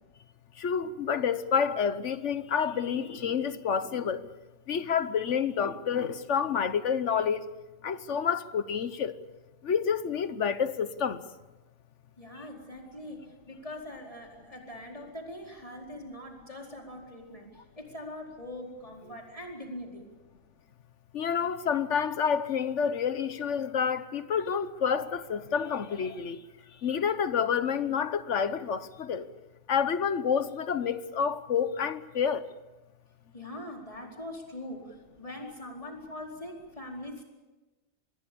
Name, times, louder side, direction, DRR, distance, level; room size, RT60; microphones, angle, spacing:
voice 1, 0.6-4.3 4.7-7.4 7.8-9.1 9.6-11.2 21.1-26.4 26.8-29.3 29.7-32.4, left 7 dB, 65° left, 1.3 m, -28 dB
voice 2, 12.2-20.1 33.3-37.2, left 1 dB, 25° left, 4.6 m, -42 dB
25.5 x 21.0 x 7.0 m
omnidirectional pair, 1.4 m